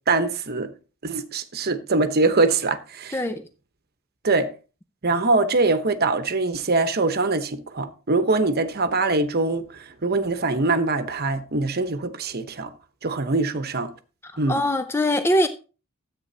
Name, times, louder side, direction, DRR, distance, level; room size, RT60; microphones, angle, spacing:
voice 1, 0.1-0.7 1.0-3.2 4.2-4.5 5.0-12.7 13.0-13.9 14.4-14.6, right 3 dB, 50° right, 1.0 m, -23 dB
voice 2, 3.1-3.4 14.2-15.5, left 1 dB, 10° left, 0.5 m, -22 dB
13.5 x 8.4 x 2.8 m
head